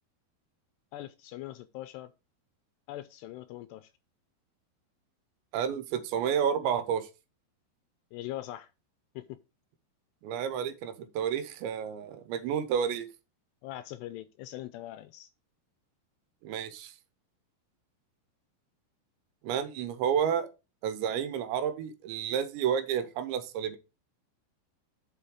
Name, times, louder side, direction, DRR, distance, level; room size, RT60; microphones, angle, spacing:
voice 1, 0.9-2.1 2.9-3.9 8.1-8.7 9.2-9.4 13.6-15.3, left 14 dB, 80° left, 2.5 m, -41 dB
voice 2, 5.5-7.1 10.2-13.1 16.4-16.9 19.4-20.5 20.8-23.8, right 8 dB, 85° right, 3.1 m, -30 dB
7.0 x 5.9 x 4.9 m
omnidirectional pair, 5.2 m